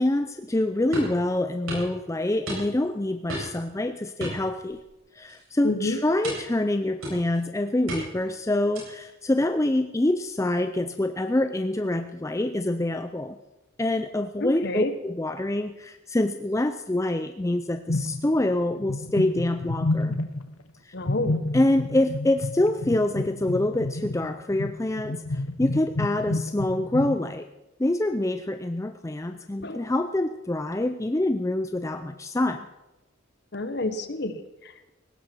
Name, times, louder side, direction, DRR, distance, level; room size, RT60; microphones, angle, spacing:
voice 1, 0.0-4.8 5.1-13.4 13.8-20.1 20.8-20.9 21.5-27.5 27.8-32.7, left 1 dB, 15° left, 8 dB, 0.4 m, -26 dB
sound 1, 0.9-1.2 1.7-1.9 2.5-2.9 3.3-3.6 4.2-5.0 5.3-5.5 6.2-6.6 7.0-7.4 7.9-8.3 8.7-9.1, equal, 80° right, 8.0 m, -34 dB
voice 2, 5.6-6.0 14.4-14.9 20.9-21.4 29.6-29.9 33.5-34.9, left 2 dB, 50° left, 10 dB, 1.2 m, -29 dB
sound 2, 17.9-18.5 18.8-20.5 21.0-27.2, left 2 dB, 80° left, 1.0 m, -30 dB
18.5 x 16.0 x 4.5 m, 1.0 s
head